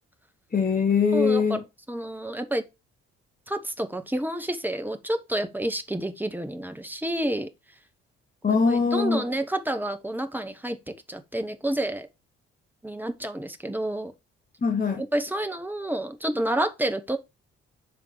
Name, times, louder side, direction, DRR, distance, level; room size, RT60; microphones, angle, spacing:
voice 1, 0.5-1.6 8.4-9.3 14.6-15.0, left 5 dB, 25° left, 1.4 m, -22 dB
voice 2, 1.1-1.4 1.9-2.6 3.5-7.5 8.5-10.8 11.1-12.1 12.8-14.1 15.1-17.2, right 1 dB, 5° right, 0.9 m, -29 dB
10.5 x 3.7 x 3.2 m
figure-of-eight pair, 40°, 36 cm